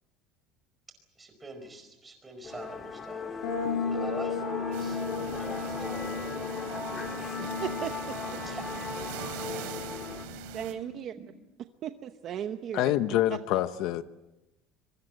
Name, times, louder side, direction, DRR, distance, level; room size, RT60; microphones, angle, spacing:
voice 1, 1.1-3.4 3.8-6.2 8.4-8.6 9.6-9.8, right 3 dB, 10° right, 4.9 m, -45 dB
Musical instrument, 2.4-10.3, left 5 dB, 20° left, 2.3 m, -38 dB
sound 1, 3.4-11.0, left 5 dB, 80° left, 6.8 m, -36 dB
sound 2, 4.7-10.7, right 11 dB, 85° right, 3.6 m, -42 dB
voice 2, 7.4-8.2 9.3-9.6 10.5-11.1 11.8-12.9 13.3-13.6, right 9 dB, 35° right, 0.9 m, -37 dB
voice 3, 12.7-14.0, left 14 dB, 50° left, 0.8 m, -26 dB
25.0 x 24.0 x 7.9 m
cardioid pair, 170°, 0 cm